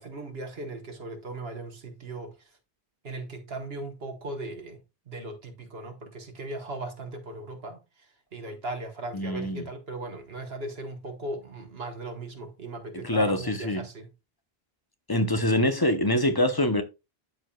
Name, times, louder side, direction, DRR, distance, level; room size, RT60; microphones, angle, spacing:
voice 1, 0.0-2.5 3.0-4.8 5.1-14.1, right 2 dB, 70° right, 1.4 m, -38 dB
voice 2, 9.1-9.7 13.0-13.8 15.1-16.8, left 1 dB, 25° left, 0.6 m, -24 dB
12.5 x 4.6 x 2.3 m
omnidirectional pair, 1.1 m